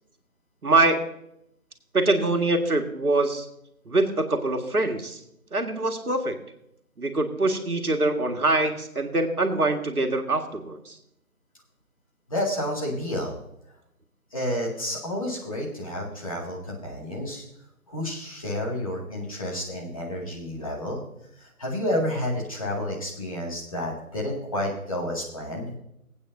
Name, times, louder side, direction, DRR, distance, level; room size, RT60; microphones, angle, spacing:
voice 1, 0.6-1.1 1.9-3.5 3.9-5.2 5.5-6.4 7.0-11.0, right 2 dB, 80° right, 4 dB, 1.9 m, -24 dB
voice 2, 12.3-13.4 14.3-17.4 17.9-21.0 21.4-25.8, left 1 dB, 25° left, -2 dB, 2.1 m, -30 dB
20.5 x 8.7 x 2.7 m, 0.79 s
figure-of-eight pair, 170°, 44 cm